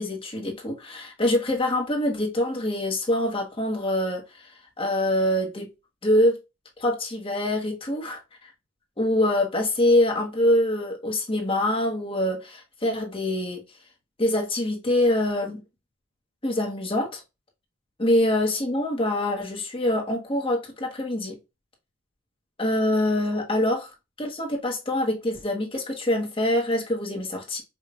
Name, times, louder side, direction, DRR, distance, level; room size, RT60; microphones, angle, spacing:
voice 1, 0.0-4.5 4.8-5.7 6.0-6.4 6.8-8.2 9.0-13.6 14.2-15.6 16.4-17.2 18.0-21.3 22.6-23.9 24.2-27.6, left 1 dB, 25° left, 1.3 m, -24 dB
5.2 x 2.7 x 2.4 m
head